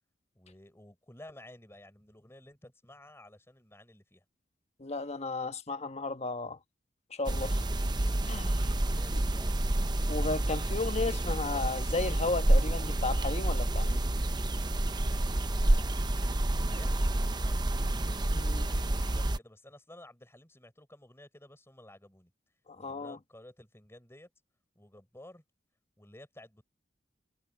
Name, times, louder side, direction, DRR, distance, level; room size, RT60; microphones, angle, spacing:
voice 1, 0.3-4.2 8.6-9.8 15.7-17.9 18.5-22.3 22.8-24.3 24.7-25.4 26.0-26.6, left 1 dB, 15° left, 5.1 m, -54 dB
voice 2, 4.8-6.6 7.1-7.7 8.2-8.7 9.1-9.2 10.1-14.0 18.3-18.7 22.7-23.2, left 3 dB, 35° left, 1.2 m, -34 dB
sound 1, 7.3-19.4, right 1 dB, 25° right, 0.7 m, -29 dB
head